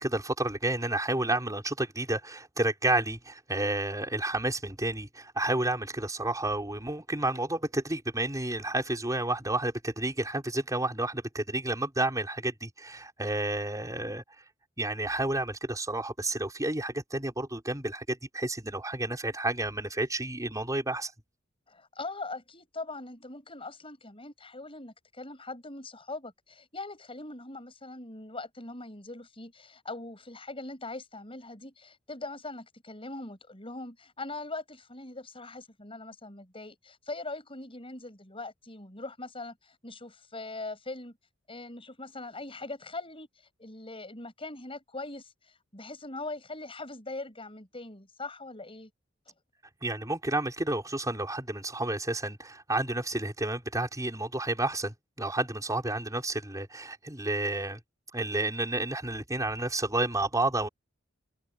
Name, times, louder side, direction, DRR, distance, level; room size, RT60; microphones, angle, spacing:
voice 1, 0.0-14.2 14.8-21.1 49.8-57.8 58.1-60.7, right 2 dB, 15° right, 5.2 m, -30 dB
voice 2, 21.7-41.2 41.5-43.3 43.6-45.3 45.7-48.9, left 2 dB, 30° left, 7.9 m, -41 dB
head